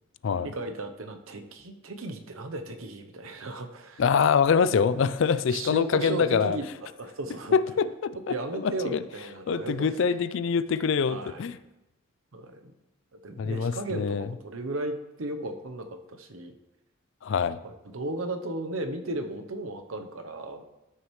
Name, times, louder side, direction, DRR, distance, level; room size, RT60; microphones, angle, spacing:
voice 1, 0.3-4.0 5.0-5.2 5.5-6.6 7.0-7.6 8.3-9.9 11.1-11.5 12.3-12.7 13.1-16.5 17.5-20.6, right 2 dB, 80° right, 7 dB, 0.8 m, -35 dB
voice 2, 4.0-6.6 7.5-9.0 9.5-11.6 13.4-14.3 17.2-17.6, left 6 dB, 65° left, 15 dB, 0.4 m, -25 dB
12.5 x 6.4 x 3.2 m, 0.97 s
head